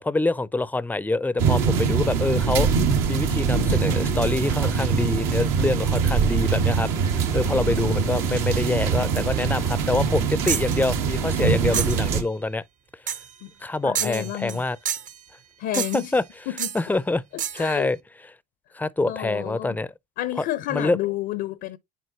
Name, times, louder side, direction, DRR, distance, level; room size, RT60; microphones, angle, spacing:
voice 1, 0.0-2.7 3.1-12.6 13.6-14.8 15.8-16.2 16.7-17.2 17.5-18.0 18.7-19.9 20.4-20.5 20.7-21.0, left 2 dB, 10° left, 0.5 m, -25 dB
sound 1, 1.4-12.2, right 5 dB, 75° right, 1.4 m, -23 dB
voice 2, 7.4-8.1 11.7-11.9 13.4-13.5 13.8-14.6 15.6-16.2 16.5-16.7 17.3-17.9 19.1-19.8 20.2-21.8, left 14 dB, 60° left, 0.6 m, -31 dB
sound 2, 10.5-10.8 11.7-12.1 13.1-13.3 13.9-14.6 14.9-15.2 15.7-16.1 16.6-16.8 17.4-17.7, right 9 dB, 40° right, 0.8 m, -29 dB
9.3 x 4.2 x 2.8 m
hypercardioid pair, 70°, 21 cm